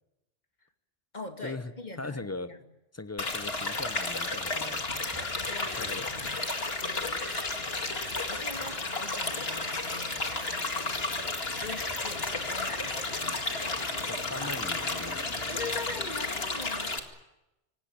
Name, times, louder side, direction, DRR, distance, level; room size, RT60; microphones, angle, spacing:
voice 1, 1.1-2.6 3.2-3.3 5.3-7.3 8.3-11.1 11.6-14.1 14.4-14.6 15.5-17.1, left 3 dB, 35° left, 4 dB, 2.5 m, -43 dB
voice 2, 2.0-2.5 2.9-4.8 5.8-6.4 14.1-15.2, left 3 dB, 15° left, 12 dB, 0.7 m, -39 dB
sound 1, 3.2-17.0, left 3 dB, 55° left, 2.4 m, -32 dB
sound 2, 4.9-15.9, right 2 dB, 20° right, 1.5 m, -47 dB
26.0 x 18.5 x 8.7 m, 0.96 s
omnidirectional pair, 1.3 m